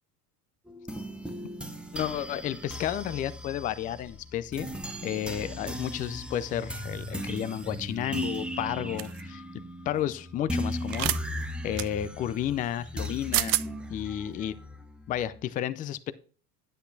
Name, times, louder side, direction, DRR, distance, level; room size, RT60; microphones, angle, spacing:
sound 1, 0.7-15.5, equal, ahead, 0.8 m, -37 dB
voice 1, 1.9-4.7 5.0-9.4 9.9-11.3 11.6-13.6 13.9-14.6 15.1-16.1, left 11 dB, 20° left, 15 dB, 0.3 m, -32 dB
sound 2, 9.0-9.2 10.9-11.2 11.8-11.9 13.0-13.1 13.3-13.7, right 18 dB, 45° right, 0.5 m, -27 dB
9.7 x 8.2 x 2.6 m, 0.43 s
hypercardioid pair, 85°, 48 cm